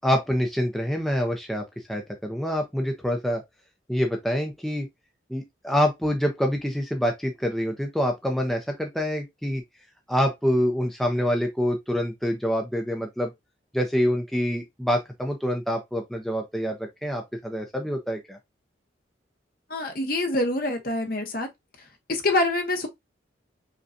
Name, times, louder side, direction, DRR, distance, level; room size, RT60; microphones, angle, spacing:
voice 1, 0.0-3.4 3.9-4.9 5.3-9.6 10.1-13.3 13.7-18.4, equal, ahead, 0.5 m, -26 dB
voice 2, 19.7-21.5 22.1-22.9, left 2 dB, 50° left, 0.9 m, -25 dB
5.1 x 2.3 x 2.6 m
head